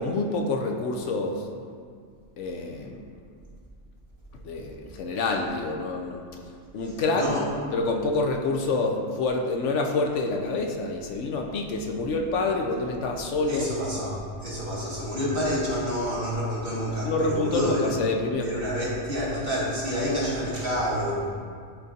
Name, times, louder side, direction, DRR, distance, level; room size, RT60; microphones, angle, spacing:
voice 1, 0.0-1.5 2.4-3.0 4.3-6.2 6.7-7.3 7.7-13.7 17.0-18.5, left 3 dB, 75° left, 2 dB, 1.0 m, -27 dB
voice 2, 13.5-18.0 18.4-21.3, equal, 50° right, -8 dB, 2.1 m, -28 dB
11.5 x 3.9 x 2.8 m, 2.1 s
omnidirectional pair, 1.3 m